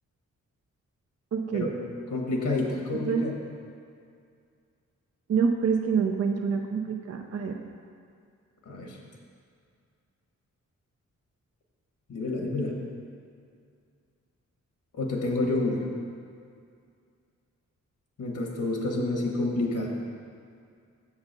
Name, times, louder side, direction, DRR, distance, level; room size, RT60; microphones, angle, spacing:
voice 1, 1.3-1.7 3.0-3.2 5.3-7.6, right 6 dB, 55° right, 3 dB, 0.6 m, -26 dB
voice 2, 2.1-3.3 8.7-9.0 12.1-12.8 14.9-15.9 18.2-19.9, left 2 dB, 70° left, 0 dB, 1.3 m, -28 dB
7.0 x 4.0 x 6.6 m, 2.3 s
cardioid pair, 55°, 31 cm